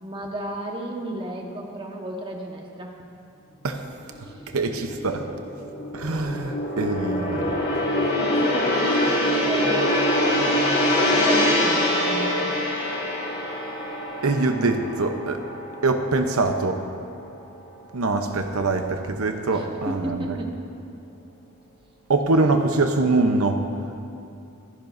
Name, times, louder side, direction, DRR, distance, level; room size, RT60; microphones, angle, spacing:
voice 1, 0.0-3.0 4.2-4.4 8.2-10.0 11.2-12.5 19.5-20.6, right 1 dB, 25° right, 0 dB, 1.3 m, -32 dB
Gong, 4.1-16.6 16.9-17.2, left 1 dB, 50° left, 2.8 m, -24 dB
voice 2, 4.5-5.2 5.9-7.5 14.2-15.4 15.8-16.8 17.9-20.4 22.1-23.6, right 3 dB, 85° right, 5 dB, 0.8 m, -23 dB
25.5 x 10.5 x 2.6 m, 2.7 s
head